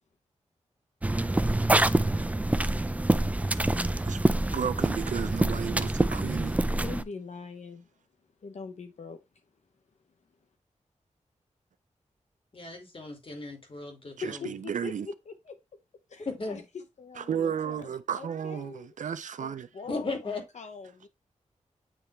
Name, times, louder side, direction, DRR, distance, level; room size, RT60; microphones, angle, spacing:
sound 1, 1.0-7.0, right 2 dB, 10° right, 0.4 m, -26 dB
voice 1, 4.5-6.5 14.2-15.1 17.2-19.7, right 8 dB, 85° right, 0.5 m, -33 dB
voice 2, 6.8-7.9 8.4-9.2 14.2-15.6 16.1-18.9 19.4-21.1, left 5 dB, 65° left, 0.8 m, -43 dB
voice 3, 12.5-14.5 16.3-16.6 19.9-20.4, left 3 dB, 45° left, 2.4 m, -36 dB
8.9 x 3.3 x 3.2 m
wide cardioid pair, 90°, 13 cm